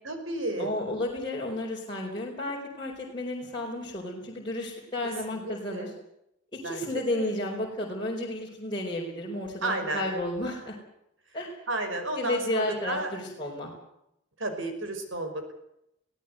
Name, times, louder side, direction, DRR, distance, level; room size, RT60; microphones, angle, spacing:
voice 1, 0.0-0.7 5.3-5.9 6.6-7.4 9.6-10.0 11.3-13.1 13.4-13.5 14.4-15.5, right 2 dB, 75° right, 7 dB, 5.4 m, -33 dB
voice 2, 0.6-5.9 6.6-10.8 11.3-11.5 12.2-13.7, left 1 dB, 25° left, -4 dB, 4.8 m, -32 dB
23.0 x 16.5 x 8.0 m, 0.80 s
head